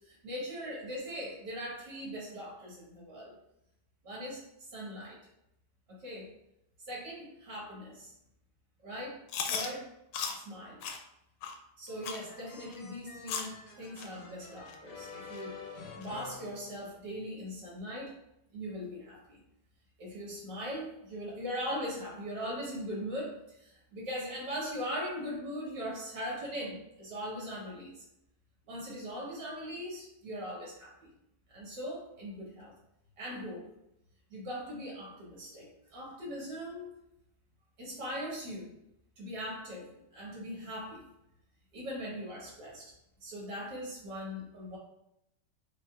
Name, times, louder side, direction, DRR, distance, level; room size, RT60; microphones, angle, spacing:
voice 1, 0.1-3.3 4.0-4.4 4.7-5.2 5.9-6.3 6.9-8.1 8.8-9.2 9.5-9.9 10.3-10.8 11.8-15.6 15.9-18.1 18.5-19.4 20.0-28.0 28.7-31.1 31.5-32.7 33.2-33.7 34.3-36.9 37.8-38.7 39.2-41.0 41.7-42.9 43.2-44.8, equal, 85° right, -5 dB, 2.1 m, -40 dB
Chewing mastication, 9.3-9.7 10.1-10.4 10.8-11.0 11.4-11.5 12.0-12.2 12.7-12.8 13.3-13.5 14.0-14.1 14.7-14.8 15.3-15.4 16.0-16.1, left 6 dB, 85° left, 1.2 m, -35 dB
sound 1, 11.9-17.3, left 5 dB, 65° left, 0.9 m, -49 dB
6.1 x 2.4 x 2.4 m, 0.83 s
omnidirectional pair, 1.9 m